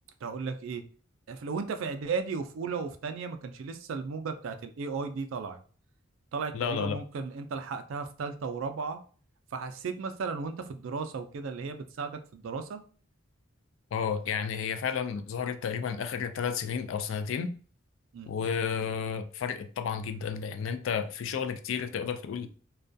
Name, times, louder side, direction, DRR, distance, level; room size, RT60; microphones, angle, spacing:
voice 1, 0.2-0.8 1.3-5.6 6.3-9.0 9.5-12.8 18.1-18.3, right 5 dB, 70° right, 0.4 m, -35 dB
voice 2, 6.5-7.0 13.9-17.5 18.3-22.5, left 7 dB, 70° left, 0.3 m, -32 dB
2.3 x 2.2 x 2.6 m
head